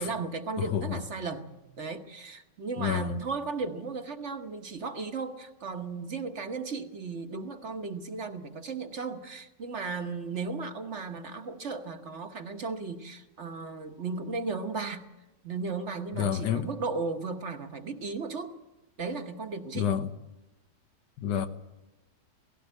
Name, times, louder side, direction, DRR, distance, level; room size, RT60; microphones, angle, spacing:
voice 1, 0.0-1.5 1.8-15.1 15.4-18.6 19.0-19.9, right 4 dB, 45° right, 1.3 m, -35 dB
voice 2, 0.6-1.0 2.8-3.2 16.2-16.7 19.8-20.1 21.2-21.5, left 9 dB, 85° left, 1.7 m, -29 dB
17.0 x 16.5 x 9.9 m
omnidirectional pair, 1.8 m